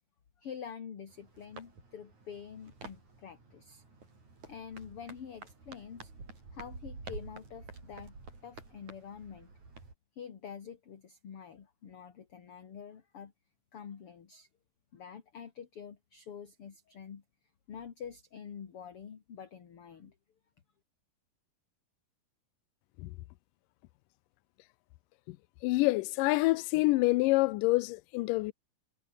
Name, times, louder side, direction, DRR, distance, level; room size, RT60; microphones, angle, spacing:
voice 1, 0.4-3.8 4.5-6.1 6.5-8.2 8.4-9.5 10.2-13.3 13.7-14.5 14.9-17.2 17.7-20.1, left 7 dB, 45° left, 2.6 m, -47 dB
sound 1, 1.1-9.9, right 3 dB, 50° right, 8.6 m, -50 dB
voice 2, 25.6-28.5, left 21 dB, 80° left, 2.0 m, -27 dB
omnidirectional pair, 4.3 m